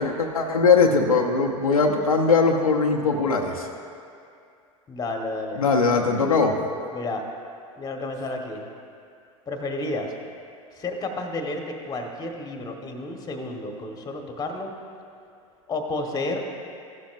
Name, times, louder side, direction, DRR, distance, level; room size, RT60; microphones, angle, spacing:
voice 1, 0.0-3.7 5.6-6.6, left 4 dB, 85° left, 1 dB, 0.8 m, -20 dB
voice 2, 4.9-5.6 6.9-7.2 7.7-8.7 9.5-10.1 10.8-14.7 15.7-16.4, left 2 dB, 20° left, 3 dB, 1.4 m, -31 dB
15.0 x 12.0 x 2.6 m, 2.4 s
figure-of-eight pair, 85°, 18 cm